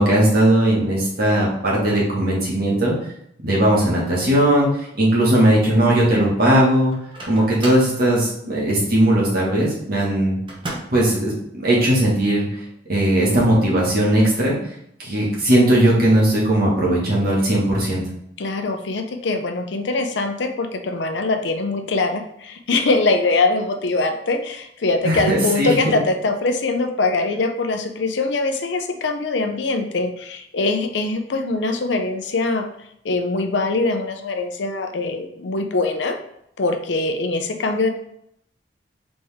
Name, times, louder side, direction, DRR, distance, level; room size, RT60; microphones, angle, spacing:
voice 1, 0.0-2.9 3.4-4.7 5.0-6.9 7.3-10.4 10.9-12.6 12.9-14.5 15.0-18.0 25.0-25.9, right 1 dB, 55° right, -5 dB, 1.6 m, -18 dB
Microwave oven, 6.9-8.0 10.5-11.1, right 1 dB, 30° right, 0.9 m, -33 dB
voice 2, 18.4-32.7 33.0-36.2 36.6-37.9, left 3 dB, 80° left, 6 dB, 0.5 m, -22 dB
4.0 x 3.5 x 3.4 m, 0.74 s
head